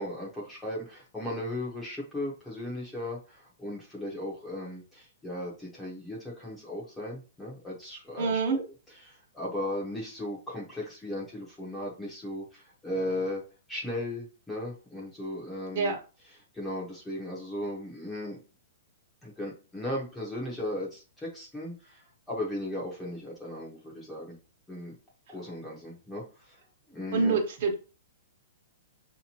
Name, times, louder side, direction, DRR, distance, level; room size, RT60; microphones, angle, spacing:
voice 1, 0.0-8.6 9.0-13.4 13.7-15.9 16.5-18.4 19.2-24.4 24.7-25.0 25.3-27.4, left 1 dB, 5° left, -5 dB, 0.8 m, -36 dB
voice 2, 8.2-8.6 15.7-16.0 27.1-27.7, right 4 dB, 40° right, 2 dB, 1.1 m, -26 dB
6.3 x 2.8 x 2.8 m, 0.34 s
hypercardioid pair, 175°, 0 cm